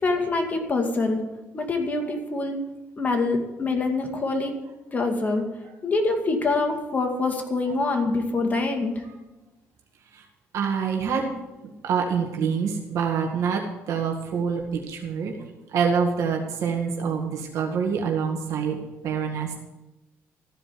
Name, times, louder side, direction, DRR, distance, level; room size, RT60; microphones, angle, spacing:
voice 1, 0.0-1.2 1.5-2.6 3.0-4.5 4.9-5.4 5.8-9.0, left 3 dB, 30° left, 3 dB, 2.3 m, -25 dB
voice 2, 10.5-11.3 11.8-13.6 13.9-15.3 15.7-18.8 19.0-19.6, right 6 dB, 70° right, 1 dB, 1.9 m, -26 dB
14.5 x 5.1 x 9.5 m, 1.0 s
cardioid pair, 100°, 5 cm